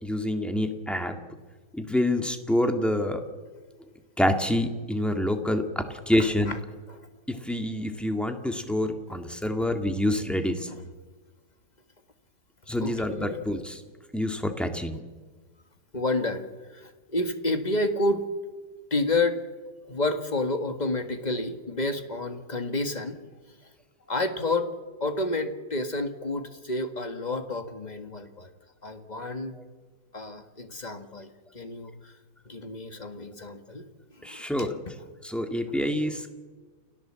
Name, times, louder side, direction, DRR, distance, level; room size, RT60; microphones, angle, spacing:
voice 1, 0.0-1.2 1.7-3.2 4.2-6.5 7.3-10.7 12.7-13.8 14.1-15.0 34.2-34.8 35.2-36.3, left 1 dB, ahead, 5 dB, 1.9 m, -27 dB
voice 2, 12.8-13.4 15.9-18.3 18.9-19.4 19.9-23.2 24.1-24.7 25.0-28.5 28.8-29.6 30.1-32.1 32.5-33.9 34.2-34.5, left 2 dB, 25° left, 7 dB, 1.8 m, -30 dB
29.5 x 17.0 x 7.6 m, 1.4 s
omnidirectional pair, 1.9 m